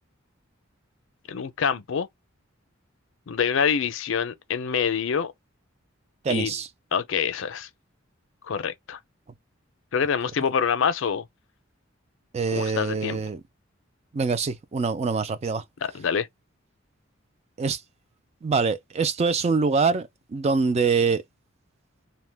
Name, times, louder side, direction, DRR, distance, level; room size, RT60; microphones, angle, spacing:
voice 1, 1.3-2.1 3.3-5.3 6.3-6.5 6.9-7.7 8.4-9.0 9.9-11.2 12.5-13.2 15.8-16.3, left 7 dB, 70° left, 0.5 m, -26 dB
voice 2, 6.2-6.7 12.3-13.4 14.1-15.6 17.6-17.8 18.4-21.2, right 4 dB, 30° right, 0.4 m, -24 dB
2.9 x 2.1 x 3.3 m
head